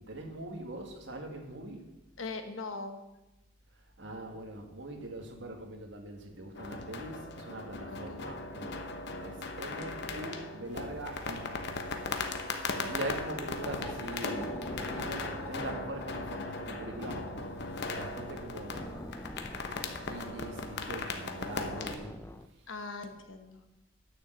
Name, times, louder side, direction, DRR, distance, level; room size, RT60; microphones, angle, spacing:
voice 1, 0.0-1.9 4.0-12.0 12.9-17.3 17.9-19.1 20.1-22.1, right 1 dB, 65° right, 3 dB, 1.9 m, -42 dB
voice 2, 2.2-3.0 7.9-8.3 22.7-23.6, left 3 dB, 85° left, 7 dB, 1.3 m, -41 dB
sound 1, 6.6-22.0, left 3 dB, 60° left, 0.9 m, -38 dB
sound 2, 13.6-22.5, left 1 dB, 10° left, 0.4 m, -46 dB
9.9 x 6.4 x 7.8 m, 0.99 s
head